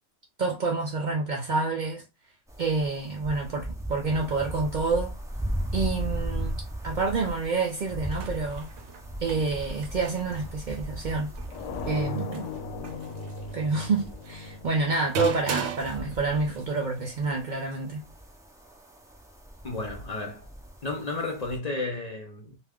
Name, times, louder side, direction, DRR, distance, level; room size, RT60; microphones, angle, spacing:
voice 1, 0.4-2.0 2.6-5.1 5.7-8.7 9.2-11.4 11.9-12.5 13.5-18.1, right 3 dB, 55° right, 0.5 m, -28 dB
sound 1, 2.5-21.6, equal, 5° right, 0.3 m, -38 dB
sound 2, 8.0-17.3, right 5 dB, 75° right, 0.9 m, -39 dB
sound 3, 11.5-16.2, left 3 dB, 90° left, 0.9 m, -38 dB
voice 2, 19.6-20.5 20.8-22.6, left 3 dB, 45° left, 0.6 m, -32 dB
2.3 x 2.3 x 3.4 m
omnidirectional pair, 1.2 m